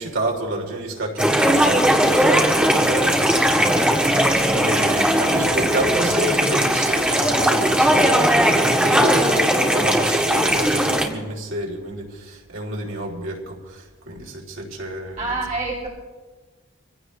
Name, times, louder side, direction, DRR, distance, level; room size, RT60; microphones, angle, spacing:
voice 1, 0.0-15.4, right 1 dB, 75° right, -1 dB, 3.4 m, -29 dB
sound 1, 1.2-11.1, equal, 5° right, 1.5 m, -18 dB
voice 2, 15.2-15.9, right 3 dB, 40° right, -4 dB, 2.9 m, -26 dB
25.0 x 16.0 x 3.2 m, 1.3 s
head